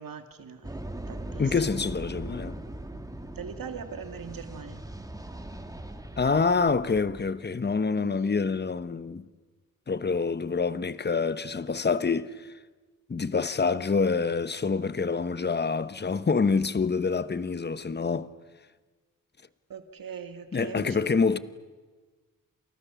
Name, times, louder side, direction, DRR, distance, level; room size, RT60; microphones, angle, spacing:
voice 1, 0.0-1.9 3.3-4.9 7.9-8.4 19.7-21.0, right 6 dB, 70° right, 2.3 m, -41 dB
sound 1, 0.6-7.4, right 1 dB, 10° right, 2.0 m, -40 dB
voice 2, 1.4-2.6 6.2-9.3 9.9-12.5 13.1-18.3 20.5-21.4, left 4 dB, 30° left, 1.0 m, -26 dB
29.5 x 27.5 x 7.1 m
wide cardioid pair, 130°, 35 cm